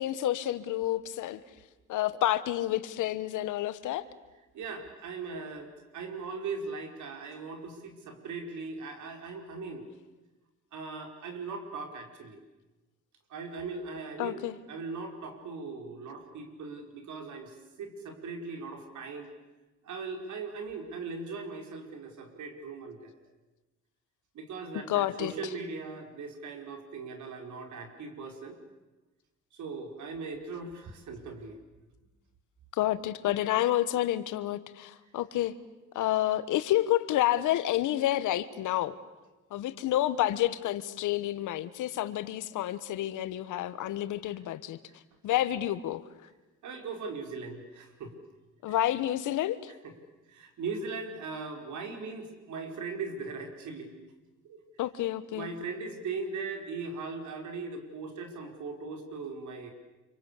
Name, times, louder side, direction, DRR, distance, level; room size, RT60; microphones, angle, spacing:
voice 1, 0.0-1.4 1.9-4.0 14.2-14.6 24.9-25.3 32.8-35.5 35.9-39.0 39.5-44.8 45.2-46.0 48.6-49.7 54.8-55.5, left 13 dB, 85° left, 14 dB, 1.4 m, -29 dB
voice 2, 4.5-9.9 10.7-12.4 13.3-14.4 14.7-19.3 19.8-23.2 24.3-28.6 29.5-31.6 44.2-44.4 46.6-48.1 48.7-48.8 49.8-49.9 50.3-54.0 54.4-54.6 55.3-59.7, right 4 dB, 75° right, 5 dB, 5.2 m, -39 dB
27.0 x 25.0 x 8.5 m, 1.1 s
cardioid pair, 90°, 30 cm